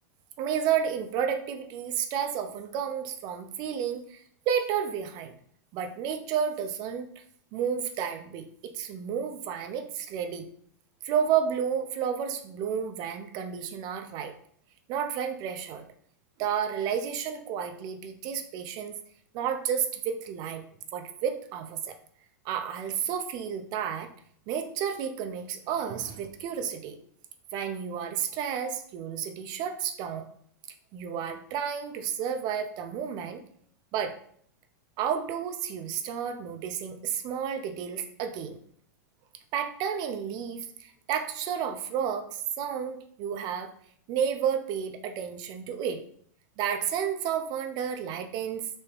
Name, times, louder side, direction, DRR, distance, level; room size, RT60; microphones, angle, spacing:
voice 1, 0.4-5.3 5.7-7.1 7.5-8.5 8.7-10.5 11.0-14.3 14.9-15.9 16.4-19.0 19.3-20.6 20.9-22.0 22.4-24.1 24.5-27.0 27.5-30.3 30.9-33.4 33.9-34.2 35.0-38.6 39.5-43.7 44.1-46.0 46.6-48.7, right 8 dB, 45° right, 7 dB, 0.5 m, -31 dB
3.4 x 2.7 x 3.4 m, 0.62 s
hypercardioid pair, 120°, 10 cm